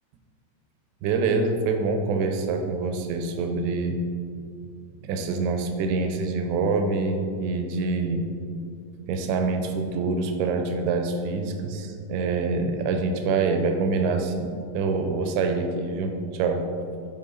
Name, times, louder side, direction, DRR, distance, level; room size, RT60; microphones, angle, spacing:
voice 1, 1.0-4.0 5.0-8.3 9.1-16.7, right 4 dB, 80° right, 6 dB, 2.8 m, -25 dB
9.6 x 5.4 x 3.9 m, 2.4 s
omnidirectional pair, 5.3 m